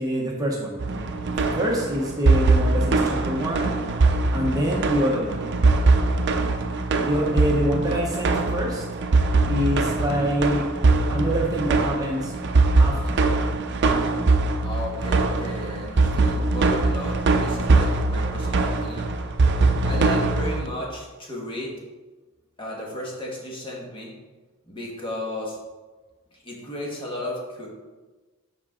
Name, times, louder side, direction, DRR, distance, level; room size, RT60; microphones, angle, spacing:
voice 1, 0.0-3.7 4.3-5.5 7.0-8.8 9.5-10.7 11.1-12.3 12.8-13.2 16.1-16.2 19.7-19.9, equal, 20° right, -2 dB, 0.9 m, -26 dB
sound 1, 0.8-20.7, right 3 dB, 55° right, 0.6 m, -22 dB
voice 2, 14.6-19.2 19.8-21.8 22.6-24.2 24.7-25.6 26.4-27.7, left 1 dB, 25° left, -2 dB, 1.5 m, -34 dB
7.6 x 5.4 x 3.7 m, 1.2 s
head